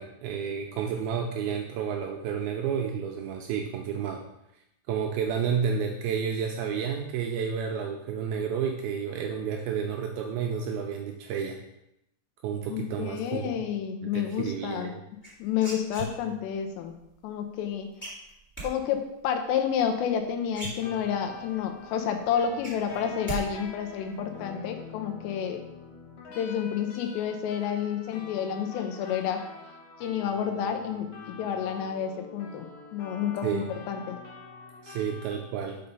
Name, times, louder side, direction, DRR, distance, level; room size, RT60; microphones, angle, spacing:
voice 1, 0.0-4.2 4.9-11.6 12.4-13.6 14.0-15.0 33.4-33.7 34.8-35.8, right 7 dB, 85° right, 2 dB, 2.2 m, -31 dB
voice 2, 12.7-14.9 15.4-16.9 17.2-17.9 18.6-25.6 26.4-29.4 30.0-34.2, left 8 dB, 85° left, 5 dB, 2.8 m, -30 dB
sound 1, 15.2-16.5 18.0-18.7 20.1-20.2 20.5-21.3 21.7-21.8 22.2-23.4 23.7-24.1, right 2 dB, 5° left, 1.6 m, -38 dB
sound 2, 20.8-35.4, left 4 dB, 60° left, 2.2 m, -45 dB
5.7 x 5.3 x 5.4 m, 0.83 s
omnidirectional pair, 4.9 m